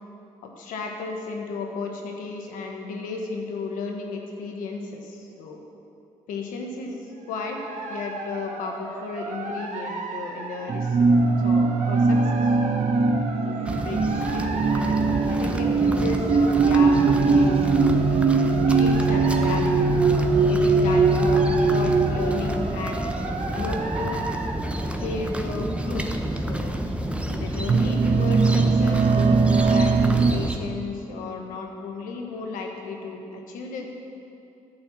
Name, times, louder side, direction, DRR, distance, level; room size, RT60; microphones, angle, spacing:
voice 1, 0.4-5.6 6.3-11.1 11.4-12.8 13.4-14.9 15.2-17.7 18.6-19.9 20.4-23.1 23.5-24.3 25.0-26.8 27.3-33.9, left 4 dB, 85° left, 2 dB, 1.2 m, -34 dB
sound 1, 7.2-24.5, right 2 dB, 65° right, 1.2 m, -35 dB
sound 2, 10.7-23.0 23.8-24.1 25.2-25.3 25.9-26.1 26.8-30.3, right 4 dB, 45° right, 0.6 m, -21 dB
sound 3, 13.7-30.6, right 1 dB, 10° right, 0.9 m, -30 dB
12.0 x 4.4 x 7.5 m, 2.7 s
supercardioid pair, 55°, 13 cm